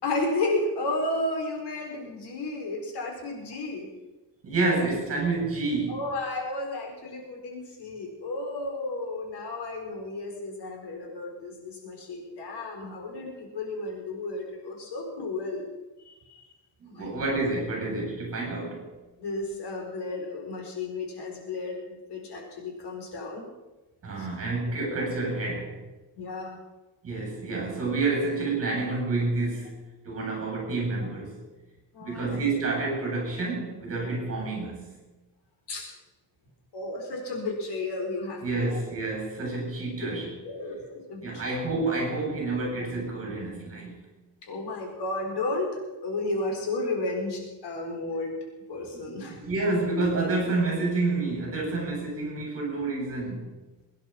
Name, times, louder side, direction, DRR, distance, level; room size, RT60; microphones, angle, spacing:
voice 1, 0.0-3.9 5.9-15.7 16.0-16.4 16.9-17.2 19.2-21.8 22.1-23.5 24.2-24.3 24.8-25.0 26.2-26.6 31.9-32.4 35.7-35.9 36.7-38.8 40.0-40.1 40.4-41.4 44.4-45.7 46.0-48.4 48.7-49.4, left 2 dB, 70° left, 1 dB, 4.6 m, -33 dB
voice 2, 4.4-6.0 16.8-18.9 24.0-25.8 27.0-29.8 30.0-31.4 32.0-34.9 38.4-40.4 41.2-44.0 49.0-53.5, right 3 dB, 35° right, 1 dB, 7.6 m, -29 dB
22.0 x 10.5 x 5.9 m, 1.1 s
cardioid pair, 150°, 42 cm